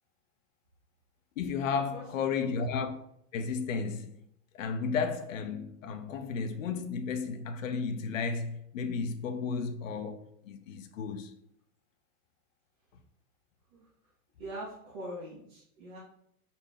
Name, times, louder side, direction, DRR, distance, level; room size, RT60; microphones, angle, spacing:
voice 1, 1.4-2.9 3.3-4.2 4.5-11.3, left 5 dB, 55° left, 0.9 m, -33 dB
voice 2, 1.9-2.6 13.7-13.9 14.4-16.0, right 1 dB, 30° right, 2.2 m, -43 dB
4.7 x 4.4 x 5.4 m
supercardioid pair, 170°, 45 cm